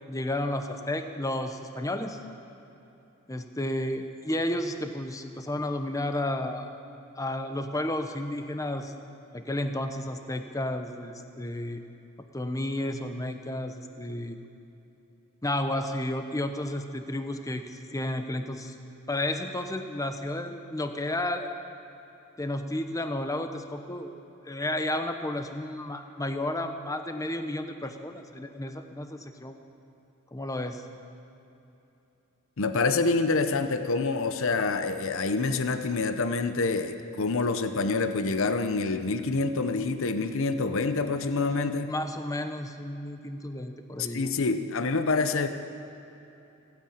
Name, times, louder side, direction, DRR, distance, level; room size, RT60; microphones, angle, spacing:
voice 1, 0.1-2.2 3.3-6.7 7.2-8.9 9.3-11.8 12.3-14.4 15.4-18.7 19.1-21.5 22.4-24.1 24.5-29.6 30.3-30.8 41.9-44.2, left 1 dB, 15° left, 7 dB, 0.9 m, -32 dB
voice 2, 32.6-41.9 44.0-45.5, left 3 dB, 65° left, 9 dB, 0.8 m, -27 dB
16.0 x 9.7 x 8.7 m, 2.9 s
head